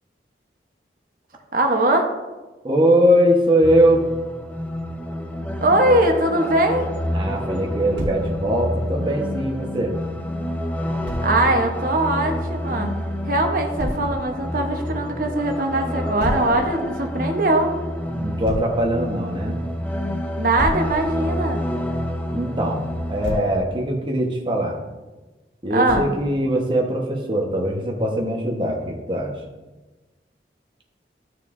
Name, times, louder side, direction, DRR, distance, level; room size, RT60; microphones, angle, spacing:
voice 1, 1.5-2.1 5.6-6.9 11.2-12.9 13.2-17.7 20.4-21.6 25.7-26.1, right 1 dB, 50° right, 3 dB, 1.1 m, -21 dB
voice 2, 2.6-4.0 7.1-9.9 18.1-19.6 22.3-24.8 25.6-29.3, equal, 30° right, 0 dB, 1.2 m, -21 dB
sound 1, 3.6-23.4, equal, 10° left, 0.5 m, -28 dB
Thump thud, 8.0-8.3 11.1-11.3 13.8-14.1 16.2-16.5 18.4-18.7 20.6-20.9 23.0-23.5 25.9-26.2, equal, 80° right, 1.7 m, -28 dB
13.0 x 6.4 x 2.6 m, 1.2 s
head